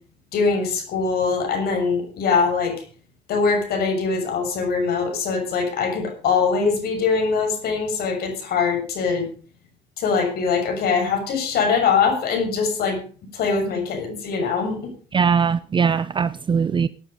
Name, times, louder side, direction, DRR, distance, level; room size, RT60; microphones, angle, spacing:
voice 1, 0.3-2.8 3.3-9.3 10.0-13.0 13.3-14.8, left 5 dB, 65° left, 6.5 m, -22 dB
voice 2, 15.1-16.9, right 6 dB, 30° right, 0.6 m, -20 dB
18.0 x 9.8 x 5.1 m
cardioid pair, 110°, 17 cm